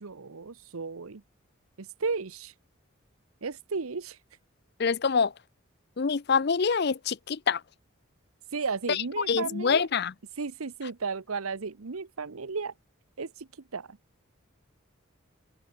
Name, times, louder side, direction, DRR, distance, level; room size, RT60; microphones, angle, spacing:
voice 1, 0.0-1.2 1.8-2.5 3.4-4.2 8.5-9.9 10.4-12.7 13.2-14.0, right 4 dB, 85° right, 0.9 m, -34 dB
voice 2, 4.8-5.3 6.0-7.6 8.9-10.1, left 5 dB, 50° left, 0.5 m, -26 dB
head